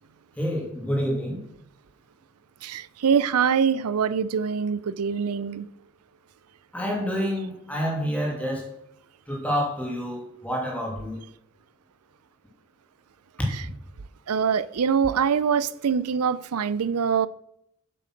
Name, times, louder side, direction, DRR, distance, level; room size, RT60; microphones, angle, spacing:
voice 1, 0.4-1.4 6.7-8.7 9.3-11.2, equal, 5° left, 2.8 m, -28 dB
voice 2, 2.6-5.7 14.3-17.3, right 6 dB, 90° right, 0.5 m, -24 dB
7.8 x 7.7 x 6.3 m
head